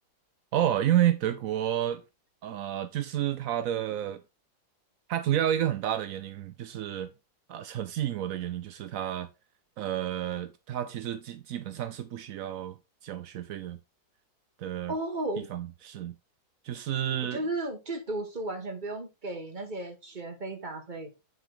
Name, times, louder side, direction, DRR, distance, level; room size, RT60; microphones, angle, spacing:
voice 1, 0.5-2.0 2.4-4.2 5.1-7.1 7.5-9.3 9.8-12.7 13.0-13.8 14.6-14.9 15.4-16.1 16.6-17.4, right 11 dB, 75° right, 0.7 m, -30 dB
voice 2, 14.9-15.5 17.1-21.1, right 2 dB, 25° right, 1.7 m, -34 dB
9.3 x 4.5 x 3.8 m
omnidirectional pair, 2.0 m